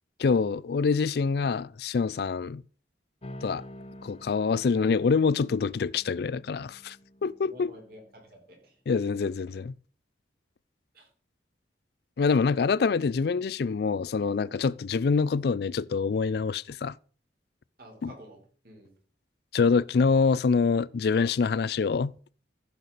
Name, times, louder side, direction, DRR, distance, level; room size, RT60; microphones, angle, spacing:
voice 1, 0.2-2.6 3.4-3.6 4.0-7.0 7.2-7.7 8.9-9.7 12.2-17.0 18.0-18.1 19.5-22.1, left 5 dB, 60° left, 0.4 m, -25 dB
sound 1, 3.2-8.1, left 1 dB, 35° left, 0.8 m, -48 dB
voice 2, 7.4-8.8 10.9-11.1 17.8-18.9, equal, 55° right, 3.9 m, -50 dB
15.0 x 6.8 x 4.1 m
head